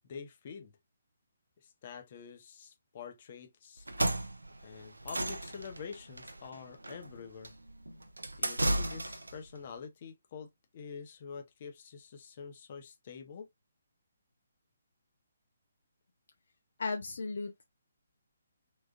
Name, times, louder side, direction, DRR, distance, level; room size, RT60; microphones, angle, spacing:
voice 1, 0.0-0.7 1.6-3.9 4.6-7.5 8.4-13.5, left 6 dB, 40° left, 0.9 m, -47 dB
sound 1, 3.8-9.4, right 1 dB, 80° right, 0.6 m, -34 dB
voice 2, 16.8-17.7, left 4 dB, 60° left, 0.6 m, -35 dB
3.6 x 3.1 x 2.4 m
figure-of-eight pair, 140°, 0 cm